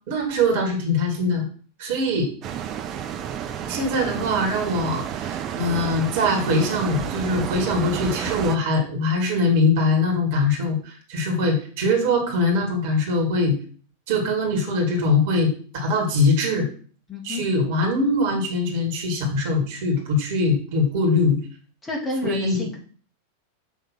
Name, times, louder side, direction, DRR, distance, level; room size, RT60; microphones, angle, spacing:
voice 1, 0.1-1.5 1.8-2.3 3.7-13.6 14.1-16.7 17.2-21.4 22.2-22.7, left 2 dB, 50° right, 2 dB, 2.2 m, -22 dB
sound 1, 2.4-8.6, right 9 dB, 35° right, 0.7 m, -30 dB
voice 2, 17.1-17.4 21.8-22.8, left 3 dB, 15° left, -1 dB, 2.1 m, -29 dB
6.4 x 3.3 x 5.9 m, 0.42 s
figure-of-eight pair, 90°, 0 cm